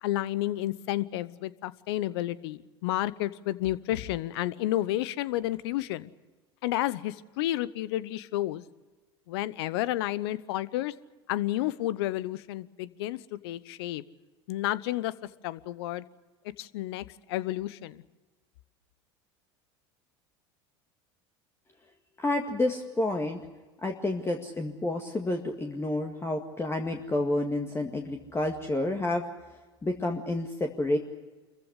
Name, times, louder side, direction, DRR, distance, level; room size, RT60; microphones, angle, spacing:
voice 1, 0.0-6.1 6.6-8.6 9.3-10.9 11.3-14.0 14.5-15.1 15.4-16.0 16.6-18.0, left 15 dB, 70° left, 18 dB, 0.9 m, -31 dB
voice 2, 22.2-23.4 23.8-29.2 29.8-31.0, left 2 dB, 20° left, 3 dB, 2.0 m, -29 dB
25.5 x 15.0 x 9.9 m, 1.2 s
hypercardioid pair, 85°, 14 cm